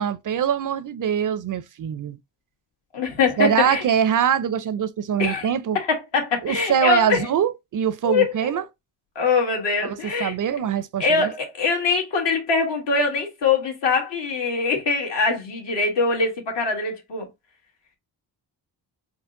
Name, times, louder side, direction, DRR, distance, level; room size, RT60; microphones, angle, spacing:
voice 1, 0.0-2.2 3.4-5.8 6.4-8.6 9.8-11.3, right 8 dB, 50° right, 0.5 m, -23 dB
voice 2, 2.9-3.8 5.2-5.5 5.7-7.3 8.0-8.5 9.1-10.3 11.0-17.3, left 4 dB, 75° left, 1.8 m, -23 dB
4.4 x 2.1 x 3.7 m
cardioid pair, 65°, 43 cm